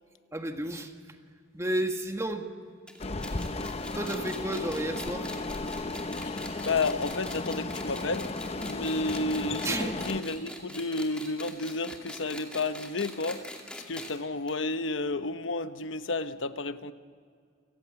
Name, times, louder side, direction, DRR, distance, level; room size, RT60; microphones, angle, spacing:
voice 1, 0.3-1.2 1.5-2.5 3.3-3.7 3.9-5.3 9.6-10.0, right 1 dB, 15° right, 4 dB, 1.7 m, -32 dB
sound 1, 2.9-14.2 14.5-14.6 14.8-14.9 15.8-15.9, left 1 dB, 5° left, 2.5 m, -43 dB
sound 2, 3.0-10.2, left 2 dB, 35° left, 0.8 m, -35 dB
sound 3, 5.9-7.6 7.8-8.4 8.7-11.4, right 3 dB, 40° right, 5.9 m, -58 dB
voice 2, 6.2-8.3 8.6-13.4 13.9-16.9, left 3 dB, 85° left, 10 dB, 1.0 m, -31 dB
28.5 x 18.5 x 7.0 m, 2.1 s
head